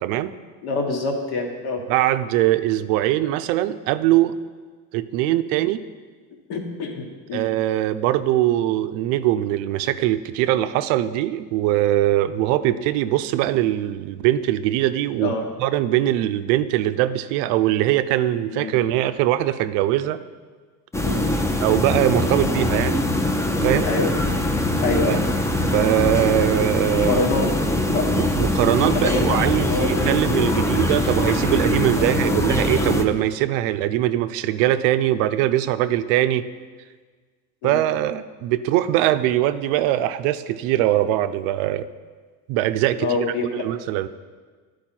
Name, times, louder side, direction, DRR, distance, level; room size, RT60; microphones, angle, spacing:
voice 1, 0.0-0.3 1.9-4.3 4.9-5.8 7.3-15.3 15.6-20.2 21.6-23.0 23.6-23.9 25.1-25.2 25.7-27.2 28.2-36.5 37.6-41.9 42.5-43.2 43.6-44.1, right 13 dB, 70° right, 12 dB, 0.5 m, -21 dB
voice 2, 0.6-1.8 5.3-5.4 6.5-7.4 15.2-15.5 18.5-18.9 21.0-21.3 23.8-24.1 24.8-25.2 26.9-27.5 27.9-28.1 28.9-30.1 32.0-32.2 37.6-37.8 43.0-43.7, left 3 dB, 60° left, 2 dB, 1.6 m, -26 dB
sound 1, 20.9-33.1, left 1 dB, 5° left, 0.6 m, -22 dB
10.5 x 4.7 x 4.5 m, 1.5 s
supercardioid pair, 100°, 43 cm